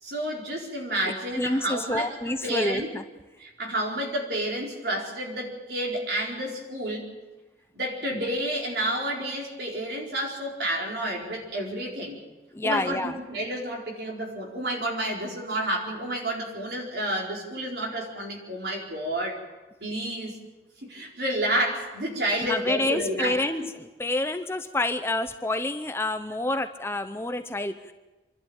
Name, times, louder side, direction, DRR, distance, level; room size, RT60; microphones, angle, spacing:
voice 1, 0.0-2.9 3.4-7.1 7.7-12.2 12.6-19.4 19.8-20.4 20.8-23.7, right 1 dB, 65° right, 0 dB, 4.4 m, -30 dB
voice 2, 1.4-3.0 12.5-13.2 22.4-27.9, left 2 dB, 15° left, 9 dB, 0.6 m, -28 dB
26.5 x 12.0 x 8.8 m, 1.1 s
head